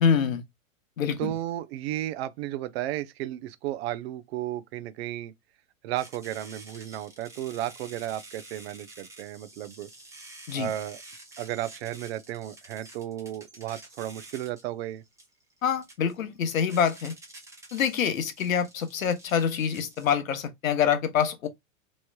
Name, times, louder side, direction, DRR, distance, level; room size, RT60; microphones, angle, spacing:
voice 1, 0.0-0.4 1.0-1.3 10.5-10.7 15.6-17.1 17.7-21.5, left 7 dB, 90° left, 0.9 m, -26 dB
voice 2, 1.2-5.3 5.8-9.9 10.5-11.0 11.4-15.0, right 13 dB, 55° right, 0.5 m, -34 dB
sound 1, 6.0-20.1, right 2 dB, 10° right, 0.8 m, -49 dB
3.1 x 3.0 x 2.2 m
hypercardioid pair, 125°, 39 cm